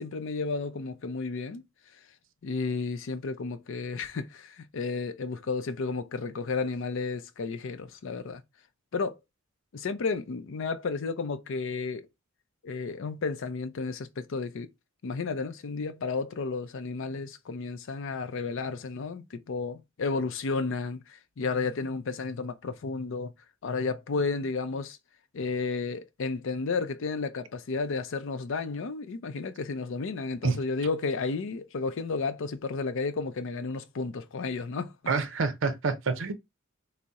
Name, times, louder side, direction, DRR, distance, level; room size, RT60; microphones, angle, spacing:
voice 1, 0.0-1.6 2.4-8.4 8.9-9.2 9.7-12.1 12.6-14.7 15.0-23.3 23.6-25.0 25.3-34.9, left 4 dB, 65° left, 0.5 m, -32 dB
voice 2, 35.1-36.3, right 4 dB, 65° right, 0.5 m, -27 dB
4.0 x 2.0 x 3.5 m
head